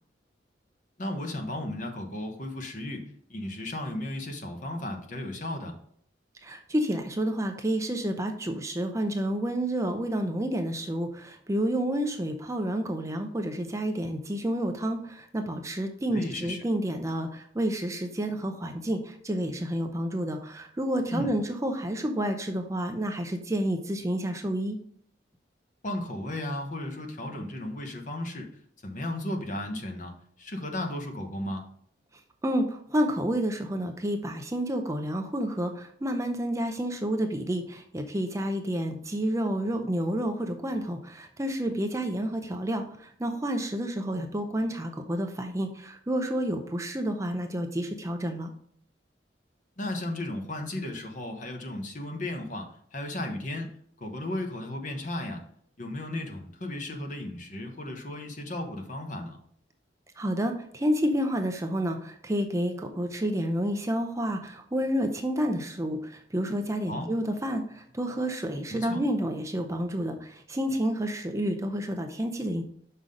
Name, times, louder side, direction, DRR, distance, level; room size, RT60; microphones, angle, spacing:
voice 1, 1.0-5.8 16.1-16.6 21.1-21.3 25.8-28.5 28.8-31.6 49.8-53.7 54.0-55.4 55.8-59.4 66.9-67.1 68.7-69.0, left 1 dB, 45° left, 4 dB, 1.1 m, -35 dB
voice 2, 6.4-24.8 32.4-48.5 60.2-72.6, equal, 15° right, 5 dB, 0.6 m, -29 dB
6.1 x 5.6 x 3.8 m, 0.63 s
head